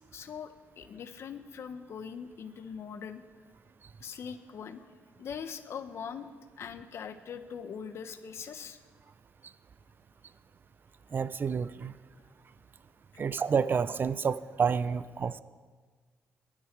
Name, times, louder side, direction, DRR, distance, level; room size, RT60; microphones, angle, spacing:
voice 1, 0.0-3.2 4.0-4.9 5.2-6.3 6.6-8.8 13.1-13.2, left 7 dB, 65° left, 9 dB, 1.3 m, -42 dB
voice 2, 11.1-11.9 13.2-15.4, right 6 dB, 45° right, 15 dB, 0.6 m, -29 dB
21.5 x 12.5 x 4.7 m, 1.5 s
cardioid pair, 70°, 5 cm